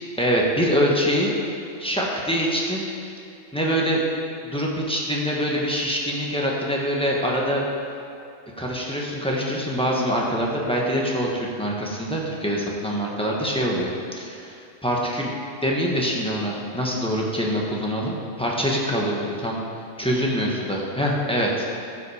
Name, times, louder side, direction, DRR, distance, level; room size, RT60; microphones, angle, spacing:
voice 1, 0.2-1.4 1.8-2.9 3.5-4.0 4.4-7.6 8.6-15.3 15.6-19.6 20.0-21.6, equal, 5° left, -3 dB, 1.4 m, -24 dB
15.0 x 5.9 x 5.0 m, 2.5 s
omnidirectional pair, 1.4 m